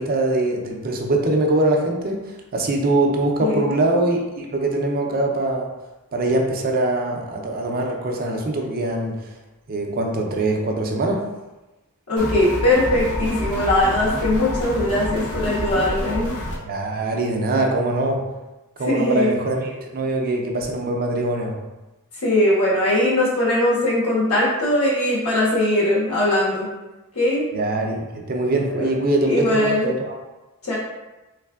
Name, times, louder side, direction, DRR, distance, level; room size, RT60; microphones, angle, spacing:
voice 1, 0.0-5.7 6.1-9.3 9.7-11.2 16.6-18.2 18.8-21.6 27.5-30.2, right 2 dB, 45° right, 1 dB, 0.5 m, -23 dB
voice 2, 3.4-3.8 12.1-16.3 18.9-19.3 22.2-26.7 27.1-27.4 28.8-28.9 29.2-29.9 30.6-30.8, left 1 dB, 70° left, -7 dB, 1.4 m, -20 dB
sound 1, 12.2-16.6, left 1 dB, 90° left, 0.8 m, -28 dB
3.5 x 3.2 x 2.3 m, 1.1 s
head